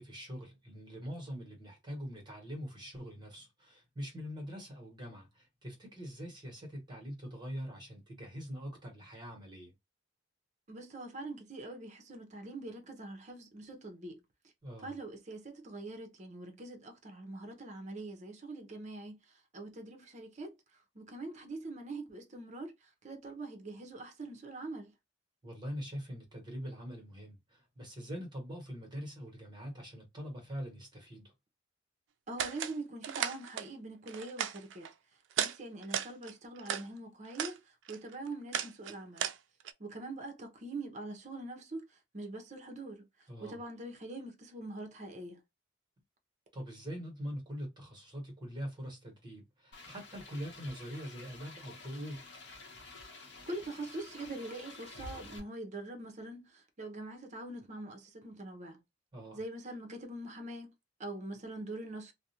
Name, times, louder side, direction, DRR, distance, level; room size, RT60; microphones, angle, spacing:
voice 1, 0.0-9.7 14.6-14.9 25.4-31.3 43.3-43.6 46.5-52.2 59.1-59.4, equal, 25° right, 1.1 m, -43 dB
voice 2, 10.7-14.2 14.8-19.2 19.5-20.6 20.9-24.9 32.3-34.9 35.4-37.6 37.9-39.3 39.8-41.9 42.1-43.1 43.4-45.4 53.5-58.8 59.3-60.7 61.0-62.1, right 2 dB, 40° right, 0.7 m, -43 dB
sound 1, 32.4-32.8 33.0-33.7 34.1-34.9 35.3-35.6 35.8-36.9 37.3-37.6 37.9-39.7, right 9 dB, 75° right, 0.3 m, -36 dB
sound 2, 49.7-55.4, left 3 dB, 70° left, 0.7 m, -50 dB
2.4 x 2.0 x 2.8 m
head